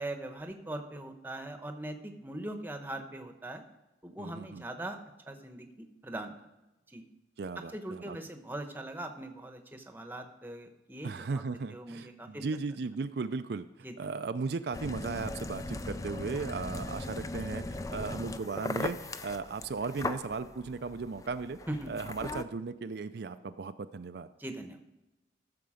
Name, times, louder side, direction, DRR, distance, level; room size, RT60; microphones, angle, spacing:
voice 1, 0.0-3.6 4.0-5.0 5.3-6.3 6.9-7.0 7.7-11.4 11.7-12.4 13.8-14.1 21.7-21.9 24.4-24.8, right 1 dB, 10° right, 6 dB, 0.9 m, -41 dB
voice 2, 4.2-4.7 7.4-8.2 11.0-21.6 21.9-24.3, right 4 dB, 65° right, 10 dB, 0.4 m, -36 dB
sound 1, 14.7-22.4, left 2 dB, 20° left, 0.4 m, -39 dB
14.0 x 6.8 x 4.9 m, 0.98 s
head